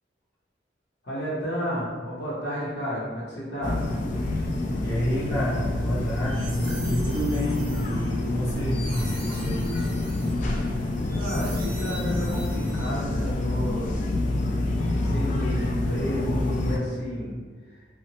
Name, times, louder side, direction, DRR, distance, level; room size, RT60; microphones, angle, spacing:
voice 1, 1.0-3.8 11.1-13.9 14.8-17.4 17.6-17.8, equal, 70° left, -6 dB, 0.8 m, -31 dB
sound 1, 3.6-16.8, left 2 dB, 45° left, 0.3 m, -27 dB
voice 2, 4.8-9.7, equal, 15° left, -9 dB, 0.7 m, -29 dB
sound 2, 6.0-13.2, right 2 dB, 50° right, 0.7 m, -44 dB
2.8 x 2.1 x 2.9 m, 1.5 s
head